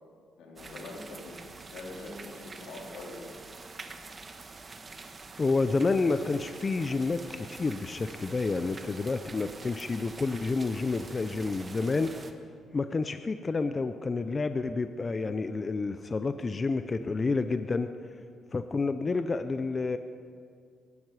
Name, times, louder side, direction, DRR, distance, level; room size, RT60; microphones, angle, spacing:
voice 1, 0.4-3.3, left 2 dB, 85° left, -2 dB, 3.7 m, -43 dB
sound 1, 0.6-12.3, right 3 dB, 35° right, 1.4 m, -46 dB
voice 2, 5.4-12.1 12.7-17.9 18.5-20.0, left 3 dB, 30° left, 9 dB, 0.6 m, -29 dB
22.5 x 12.5 x 4.9 m, 2.2 s
cardioid pair, 90°, 0 cm